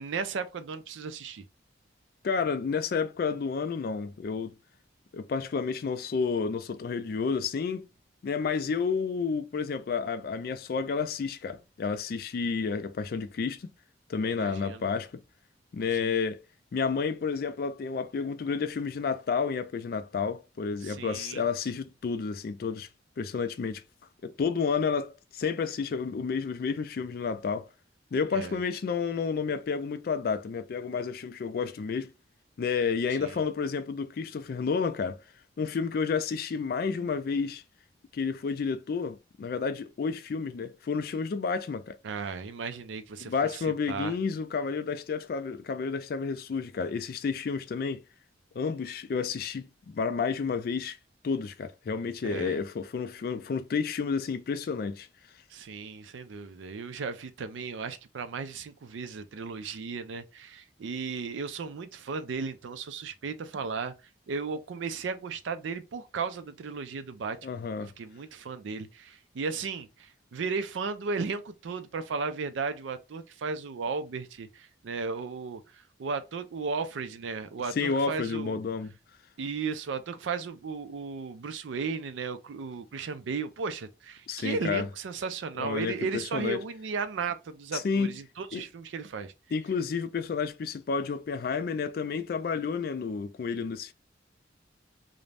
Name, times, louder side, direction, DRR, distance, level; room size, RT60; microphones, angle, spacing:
voice 1, 0.0-1.4 14.3-14.9 15.9-16.2 20.8-21.5 28.3-28.6 33.2-33.4 42.0-44.1 52.2-52.6 55.5-63.9 64.3-67.4 67.8-78.6 79.4-89.3, right 5 dB, 80° right, 0.4 m, -35 dB
voice 2, 2.2-4.5 5.1-7.9 8.2-13.7 14.1-15.2 15.7-16.4 16.7-22.9 23.2-23.8 24.2-27.7 28.1-32.1 32.6-35.2 35.6-37.6 38.1-42.0 43.2-48.0 48.6-51.0 51.2-55.1 67.4-67.9 77.8-78.9 84.3-84.9 85.6-85.9 86.3-86.6 87.7-88.1 88.5-88.6 89.5-93.9, left 5 dB, 50° left, 0.3 m, -30 dB
2.5 x 2.1 x 3.2 m
head